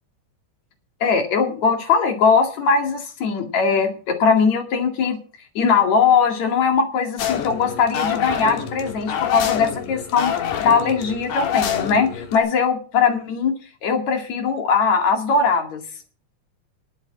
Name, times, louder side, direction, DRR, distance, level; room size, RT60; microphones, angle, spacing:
voice 1, 1.0-5.2 5.5-10.3 10.6-13.5 13.8-15.8, left 5 dB, 65° left, 5 dB, 3.4 m, -20 dB
sound 1, 7.2-12.4, left 8 dB, 80° left, 3.1 m, -26 dB
11.0 x 8.8 x 7.4 m, 0.37 s
omnidirectional pair, 3.6 m